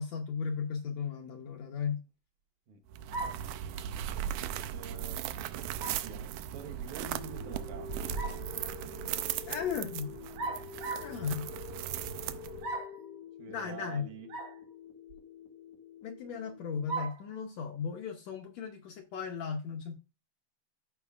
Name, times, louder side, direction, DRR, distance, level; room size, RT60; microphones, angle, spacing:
voice 1, 0.0-2.0 9.5-10.2 11.0-11.5 13.5-14.1 16.0-19.9, left 6 dB, 70° left, 1.8 m, -36 dB
sound 1, 2.9-12.8, right 11 dB, 90° right, 2.3 m, -38 dB
sound 2, 3.1-3.5 5.8-6.1 7.9-8.5 10.4-11.2 12.6-13.0 14.3-14.6 15.1-15.2 16.9-17.2, right 3 dB, 50° right, 1.6 m, -37 dB
voice 2, 4.7-5.3 5.8-8.0 12.1-12.3 13.4-14.3, right 6 dB, 70° right, 2.3 m, -47 dB
sound 3, 7.0-17.0, left 12 dB, 90° left, 2.9 m, -48 dB
14.0 x 5.2 x 2.4 m
omnidirectional pair, 3.9 m